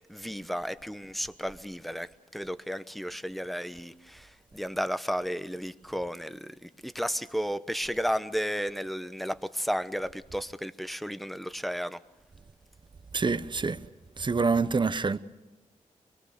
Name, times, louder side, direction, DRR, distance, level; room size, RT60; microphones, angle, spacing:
voice 1, 0.1-12.0, equal, ahead, 0.9 m, -33 dB
voice 2, 13.1-13.8 14.2-15.2, right 4 dB, 35° right, 0.9 m, -26 dB
23.5 x 22.0 x 6.7 m
cardioid pair, 70°, 14 cm